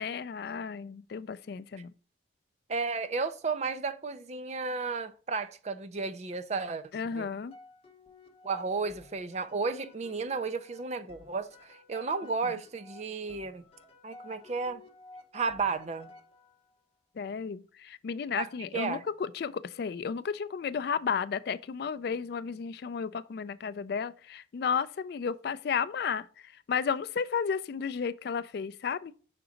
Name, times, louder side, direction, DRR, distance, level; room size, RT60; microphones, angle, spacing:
voice 1, 0.0-1.9 6.9-7.5 12.4-12.5 17.2-29.1, left 6 dB, 55° left, 0.3 m, -33 dB
voice 2, 2.7-6.8 7.1-7.3 8.4-13.7 14.0-14.8 15.3-16.1 18.4-18.5 18.7-19.0, right 4 dB, 35° right, 0.4 m, -33 dB
sound 1, 7.5-16.8, left 2 dB, 30° left, 0.8 m, -55 dB
5.9 x 3.8 x 5.0 m
head